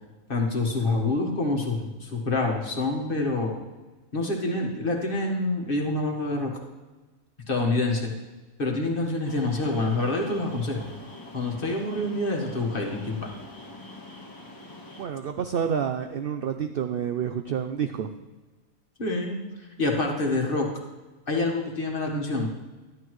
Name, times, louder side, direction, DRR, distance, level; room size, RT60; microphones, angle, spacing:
voice 1, 0.3-3.5 4.1-6.5 7.5-8.1 8.6-10.9 11.3-13.3 19.0-19.4 19.8-20.7 21.3-22.5, left 2 dB, 40° left, 1 dB, 1.6 m, -26 dB
sound 1, 9.2-15.0, left 2 dB, 15° left, 1.3 m, -44 dB
voice 2, 15.0-18.1, right 8 dB, 75° right, 7 dB, 0.5 m, -29 dB
12.0 x 11.0 x 3.1 m, 1.2 s
omnidirectional pair, 1.5 m